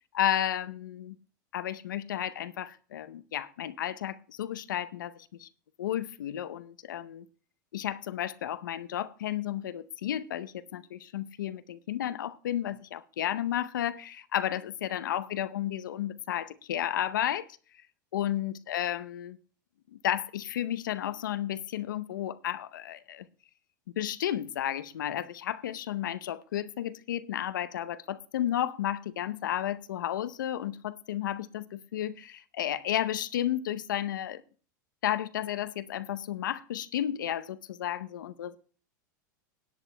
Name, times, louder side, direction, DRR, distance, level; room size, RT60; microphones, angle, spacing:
voice 1, 0.1-1.1 1.5-5.5 5.8-7.2 7.7-17.5 18.1-19.4 20.0-23.3 24.0-34.4 35.0-38.6, left 11 dB, 80° left, 0.7 m, -32 dB
17.5 x 11.0 x 2.2 m
hypercardioid pair, 100°, 10 cm